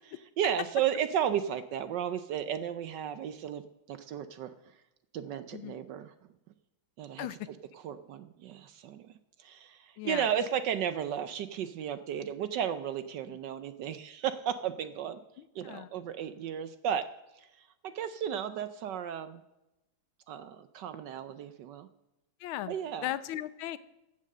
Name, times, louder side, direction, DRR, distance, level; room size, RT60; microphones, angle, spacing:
voice 1, 0.4-3.6 3.9-4.5 5.1-6.1 7.0-9.1 9.4-15.2 15.5-19.4 20.3-21.9 22.7-23.1, right 9 dB, 70° right, 12 dB, 1.2 m, -34 dB
voice 2, 10.0-10.3 13.3-13.4 15.6-15.9 22.4-22.8 23.0-23.8, left 13 dB, 80° left, 15 dB, 1.5 m, -37 dB
15.0 x 7.5 x 6.5 m, 0.96 s
omnidirectional pair, 2.2 m